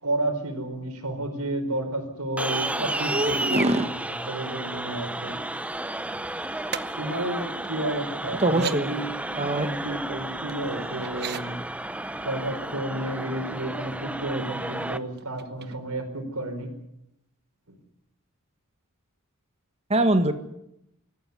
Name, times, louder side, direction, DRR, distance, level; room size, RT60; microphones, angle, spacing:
voice 1, 0.0-5.4 5.8-5.9 7.0-11.6 12.2-16.7 17.7-17.8, right 1 dB, 85° right, 6 dB, 4.9 m, -31 dB
sound 1, 2.4-15.0, right 1 dB, 5° right, 0.8 m, -32 dB
voice 2, 2.9-3.9 8.4-8.9 9.4-9.7 19.9-20.3, right 1 dB, 30° right, 8 dB, 1.7 m, -23 dB
sound 2, 6.7-6.8 7.6-7.7 8.4-8.8 10.5-11.4 13.2-13.3 13.7-14.1 15.2-16.1 16.5-16.6, right 9 dB, 50° right, 1.1 m, -38 dB
23.5 x 15.0 x 9.6 m, 0.81 s
head